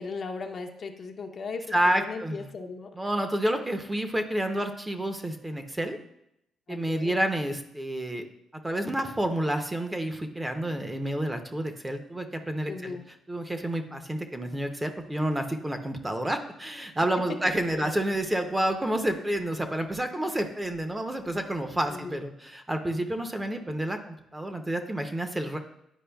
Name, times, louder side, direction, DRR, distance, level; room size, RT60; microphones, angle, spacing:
voice 1, 0.0-3.0 6.7-7.2 12.7-13.1 17.2-17.3 17.7-17.9 21.9-22.2, left 4 dB, 50° left, 4 dB, 0.7 m, -37 dB
voice 2, 1.7-2.5 3.0-6.0 6.7-8.2 8.6-13.0 13.3-25.6, right 1 dB, 15° right, 6 dB, 0.6 m, -29 dB
9.9 x 4.7 x 2.3 m, 0.80 s
cardioid pair, 90°, 0 cm